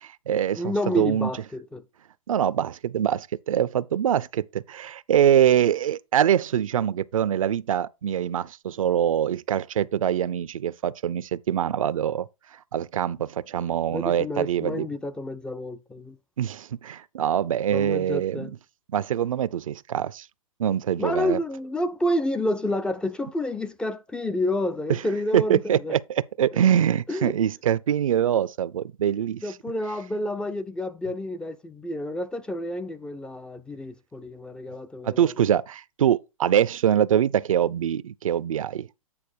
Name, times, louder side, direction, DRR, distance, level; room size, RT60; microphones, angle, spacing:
voice 1, 0.0-1.3 2.3-12.3 12.7-14.9 16.4-18.5 18.9-20.3 20.6-21.4 25.3-29.4 35.0-38.9, right 10 dB, 70° right, 0.5 m, -24 dB
voice 2, 0.6-1.8 13.9-16.2 17.7-18.5 21.0-25.9 27.1-27.3 29.4-35.3, left 1 dB, 5° left, 0.3 m, -29 dB
8.7 x 4.1 x 4.6 m
hypercardioid pair, 125°, 18 cm